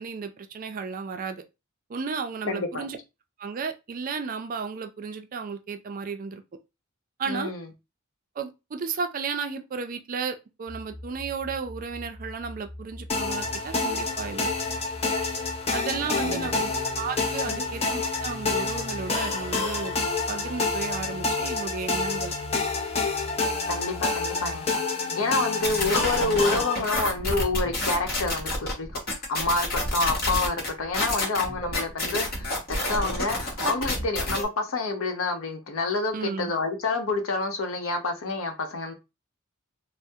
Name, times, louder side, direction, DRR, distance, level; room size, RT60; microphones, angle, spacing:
voice 1, 0.0-1.4 1.9-3.0 3.4-6.4 7.2-7.5 8.4-14.5 15.7-20.0 20.3-22.4 36.1-36.5, right 5 dB, 40° right, 0.3 m, -33 dB
voice 2, 2.5-2.9 7.3-7.7 16.2-16.5 17.5-17.7 23.7-29.0 29.3-33.4 33.6-38.9, left 3 dB, 70° left, 0.7 m, -28 dB
sound 1, 10.7-24.7, left 1 dB, 10° right, 0.7 m, -42 dB
sound 2, 13.1-26.8, left 3 dB, 30° left, 0.5 m, -28 dB
sound 3, 25.6-34.4, left 1 dB, 45° left, 0.9 m, -28 dB
3.4 x 2.0 x 2.6 m
head